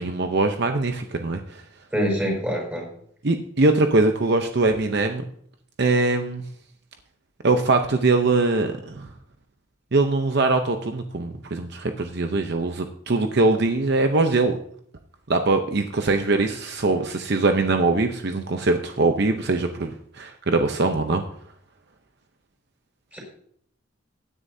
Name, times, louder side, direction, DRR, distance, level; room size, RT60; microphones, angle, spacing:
voice 1, 0.0-1.6 3.2-5.2 5.8-6.4 7.4-9.1 9.9-14.6 15.3-21.2, right 3 dB, 55° right, 6 dB, 0.7 m, -22 dB
voice 2, 1.9-2.9 23.1-23.2, equal, 10° right, -2 dB, 5.7 m, -25 dB
16.5 x 10.0 x 2.7 m, 0.64 s
head